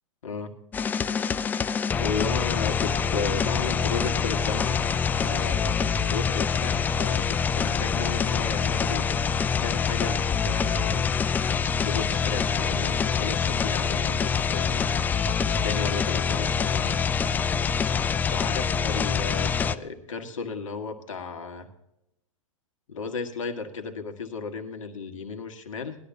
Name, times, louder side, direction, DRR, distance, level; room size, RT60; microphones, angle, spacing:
voice 1, 0.2-0.6 2.0-4.8 5.2-9.1 9.6-11.2 11.8-14.9 15.6-17.0 18.3-21.7 22.9-26.0, left 4 dB, 70° left, 7 dB, 1.8 m, -34 dB
sound 1, 0.7-19.8, left 6 dB, 10° left, 0.3 m, -25 dB
19.5 x 12.0 x 2.8 m, 0.85 s
hypercardioid pair, 115°, 17 cm